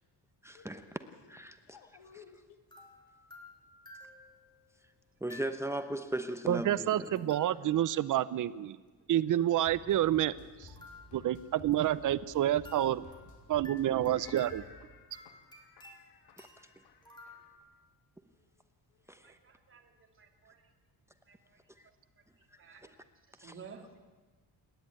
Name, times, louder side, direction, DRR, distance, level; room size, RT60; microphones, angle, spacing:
voice 1, 0.4-1.0 1.3-1.8 2.1-2.2 5.2-7.6 16.4-16.5 19.1-19.4 21.8-21.9 23.4-23.5, right 1 dB, 5° right, 0.9 m, -38 dB
voice 2, 1.7-2.6 14.1-16.5 16.8-17.3, left 7 dB, 80° left, 2.2 m, -56 dB
sound 1, 1.8-2.1 2.7-4.6 5.3-6.0 7.1-8.1 10.7-12.3 12.6-17.6, left 2 dB, 10° left, 3.2 m, -54 dB
voice 3, 6.5-8.8 9.1-10.3 10.6-10.7 11.1-13.0 13.5-14.6, right 12 dB, 50° right, 0.7 m, -28 dB
sound 2, 9.6-14.7, left 3 dB, 50° left, 5.3 m, -54 dB
voice 4, 19.2-20.7 21.3-21.9 22.6-23.0 23.3-24.0, right 5 dB, 30° right, 2.7 m, -54 dB
28.5 x 11.0 x 9.2 m
cardioid pair, 145°, 39 cm